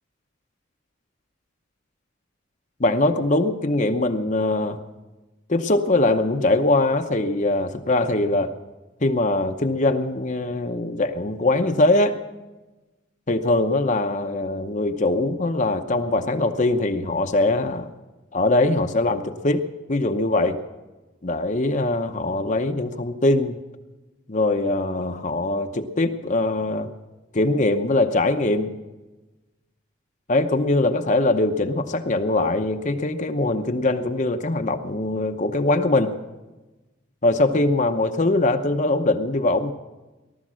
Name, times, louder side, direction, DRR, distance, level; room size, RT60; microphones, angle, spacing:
voice 1, 2.8-4.8 5.5-8.5 9.0-12.2 13.3-17.9 18.3-20.6 21.2-23.5 24.3-26.9 27.3-28.7 30.3-36.1 37.2-39.7, left 2 dB, 40° left, 6 dB, 0.8 m, -22 dB
19.0 x 12.0 x 6.3 m, 1.1 s
head